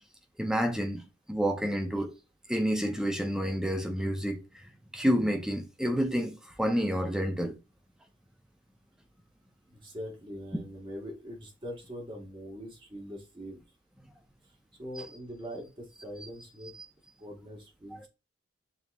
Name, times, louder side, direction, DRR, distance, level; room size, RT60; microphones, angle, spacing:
voice 1, 0.4-1.0 1.3-2.1 2.5-7.5 10.5-10.6 15.0-15.1 17.9-18.0, equal, 5° right, 0.5 m, -29 dB
voice 2, 9.7-13.6 14.4-16.7 17.2-18.1, equal, 25° right, 1.2 m, -42 dB
6.9 x 2.9 x 2.2 m
head